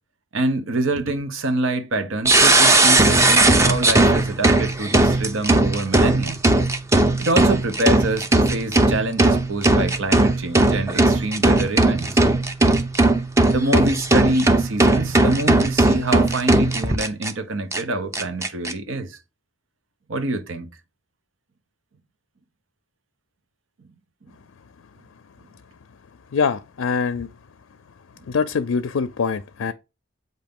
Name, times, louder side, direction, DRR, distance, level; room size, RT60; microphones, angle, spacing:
voice 1, 0.3-6.4 7.2-12.2 13.5-19.2 20.1-20.7, right 2 dB, 75° right, 0.9 m, -25 dB
sound 1, 2.2-17.3 17.7-17.8 18.1-18.7, right 2 dB, 15° right, 0.5 m, -18 dB
voice 2, 26.3-27.3 28.3-29.7, left 5 dB, 85° left, 0.5 m, -23 dB
7.9 x 2.7 x 5.2 m
head